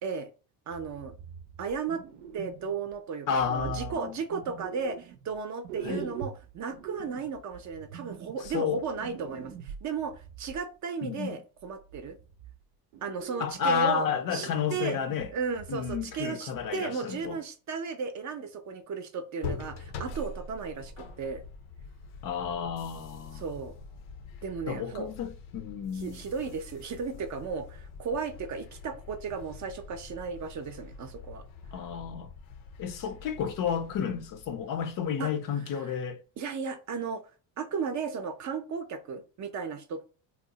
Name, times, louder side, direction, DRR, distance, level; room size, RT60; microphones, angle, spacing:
voice 1, 0.7-1.1 1.6-2.0 2.3-12.2 13.0-15.0 15.3-21.4 23.3-23.8 24.4-25.1 25.9-31.4 35.2-35.3 35.9-36.0 36.4-37.2 37.6-40.1, right 5 dB, 40° right, 0.5 m, -35 dB
sound 1, 0.7-2.9 3.3-5.4 5.6-10.6 11.6-12.6 12.9-14.0 14.3-16.3 16.5-16.7 17.2-17.3, right 8 dB, 80° right, 0.6 m, -44 dB
voice 2, 3.3-4.2 5.8-6.1 8.4-8.8 11.0-11.4 13.4-15.3 15.7-17.4 22.2-23.4 24.7-26.2 31.7-32.3 32.8-36.2, left 7 dB, 45° left, 0.5 m, -31 dB
sound 2, 19.4-35.1, left 3 dB, 80° left, 0.7 m, -44 dB
2.9 x 2.0 x 3.8 m
cardioid pair, 105°, 46 cm